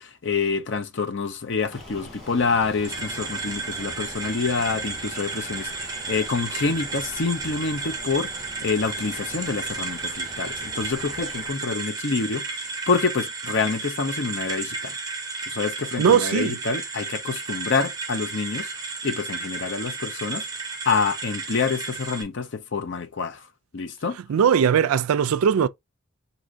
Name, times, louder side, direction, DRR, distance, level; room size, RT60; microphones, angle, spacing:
voice 1, 0.0-15.0 15.5-18.7 19.0-20.4 20.9-23.4 23.7-24.2, left 4 dB, 55° left, 0.6 m, -27 dB
sound 1, 1.7-11.5, left 1 dB, ahead, 3.2 m, -43 dB
sound 2, 2.8-22.2, right 4 dB, 15° right, 0.7 m, -33 dB
voice 2, 16.0-16.5 24.3-25.7, right 7 dB, 85° right, 0.3 m, -19 dB
6.2 x 2.7 x 2.6 m
head